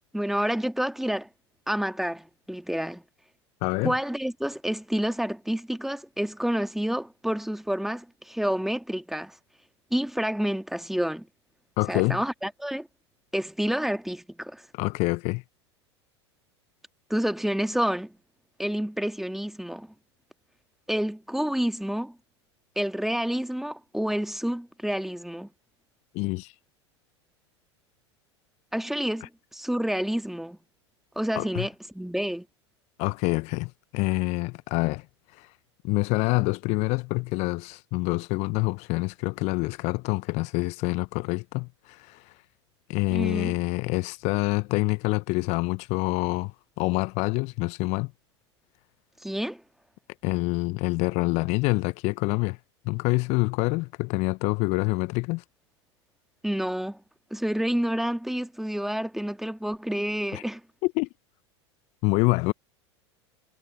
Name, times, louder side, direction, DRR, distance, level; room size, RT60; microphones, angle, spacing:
voice 1, 0.1-1.3 1.7-3.0 3.8-9.4 9.9-11.3 11.9-12.9 13.3-14.6 17.1-18.1 18.6-19.9 20.9-22.1 22.7-25.5 28.7-30.6 31.1-32.4 43.1-43.5 49.2-49.6 56.4-57.0 57.3-60.6, equal, ahead, 1.8 m, -29 dB
voice 2, 3.6-3.9 11.8-12.2 14.7-15.4 26.1-26.5 31.4-31.7 33.0-35.0 35.4-35.5 35.8-42.2 42.9-48.1 50.2-52.6 52.8-55.4 60.3-60.4 60.8-61.1 62.0-62.5, left 26 dB, 50° left, 0.9 m, -26 dB
figure-of-eight pair, 85°, 15 cm